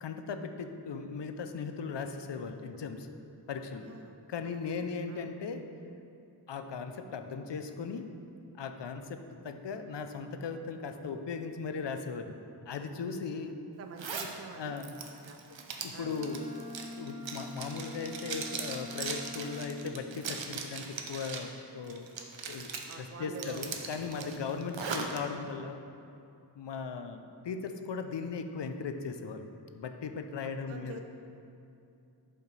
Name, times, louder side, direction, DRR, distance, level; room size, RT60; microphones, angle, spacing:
voice 1, 0.0-3.1 3.5-3.9 4.3-5.6 6.5-8.1 8.6-9.2 9.4-12.4 12.7-13.6 14.6-14.9 15.8-16.4 17.0-22.1 22.4-25.8 26.6-29.4 29.7-31.0, left 5 dB, 70° left, 7 dB, 0.6 m, -38 dB
voice 2, 3.8-4.1 4.4-4.6 5.1-5.3 13.8-14.8 15.1-15.4 15.9-16.1 22.8-23.7 24.2-24.4 30.7-31.0, right 5 dB, 35° right, 5 dB, 0.4 m, -47 dB
Zipper (clothing), 14.0-14.3 14.8-21.5 21.9-22.9 23.3-25.2, right 5 dB, 85° right, 0.8 m, -39 dB
Bowed string instrument, 15.8-20.0, left 2 dB, 25° left, 1.4 m, -45 dB
10.5 x 5.6 x 3.3 m, 2.7 s
wide cardioid pair, 85°, 44 cm